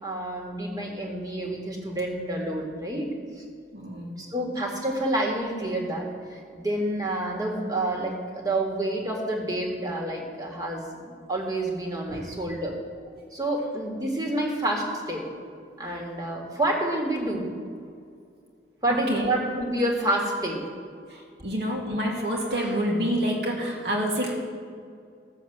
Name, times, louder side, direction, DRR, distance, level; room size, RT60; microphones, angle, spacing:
voice 1, 0.0-3.4 4.2-11.0 11.3-12.8 13.3-15.3 15.8-17.5 18.8-20.6, right 1 dB, 20° right, -1 dB, 2.0 m, -28 dB
voice 2, 3.7-4.2 12.1-12.3 15.9-16.1 18.9-19.3 21.1-24.3, equal, 65° right, -1 dB, 2.5 m, -28 dB
15.0 x 7.2 x 8.0 m, 2.3 s
head